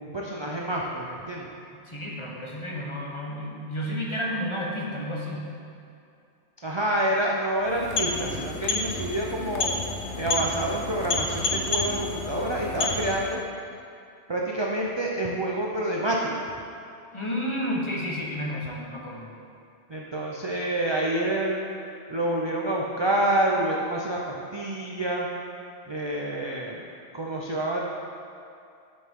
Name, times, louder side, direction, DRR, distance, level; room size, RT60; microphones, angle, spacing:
voice 1, 0.0-1.5 6.6-9.7 10.2-13.4 14.3-16.4 19.9-21.7 22.1-25.3 25.9-26.8 27.1-27.8, right 1 dB, 35° right, -2 dB, 0.5 m, -27 dB
voice 2, 1.9-5.5 17.1-19.3, equal, 30° left, -3 dB, 0.9 m, -31 dB
sound 1, 7.6-13.4, left 3 dB, 75° left, 1.0 m, -30 dB
7.9 x 6.8 x 3.6 m, 2.5 s
omnidirectional pair, 1.2 m